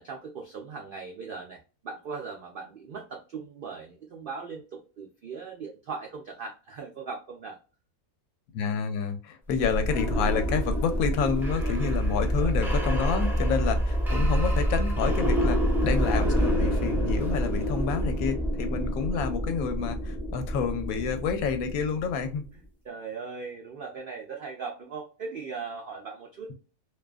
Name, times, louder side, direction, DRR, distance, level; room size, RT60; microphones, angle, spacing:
voice 1, 0.0-7.6 11.6-11.9 12.3-12.5 22.8-26.5, right 5 dB, 80° right, 1 dB, 0.4 m, -39 dB
voice 2, 8.5-22.4, left 6 dB, 75° left, 8 dB, 1.0 m, -29 dB
sound 1, 9.5-22.3, equal, 5° right, 0.4 m, -27 dB
2.5 x 2.3 x 2.3 m, 0.34 s
omnidirectional pair, 1.6 m